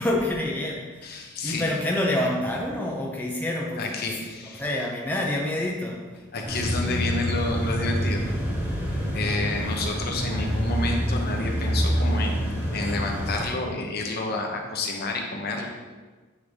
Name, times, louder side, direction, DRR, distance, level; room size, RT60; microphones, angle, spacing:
voice 1, 0.0-1.1 1.4-4.1 4.5-6.1, left 1 dB, 10° left, -1 dB, 0.5 m, -27 dB
voice 2, 1.0-1.7 3.8-4.6 6.3-8.3 9.1-15.7, left 2 dB, 50° left, 2 dB, 0.8 m, -30 dB
sound 1, 6.4-13.5, equal, 10° right, 0.9 m, -27 dB
8.3 x 3.5 x 3.2 m, 1.3 s
head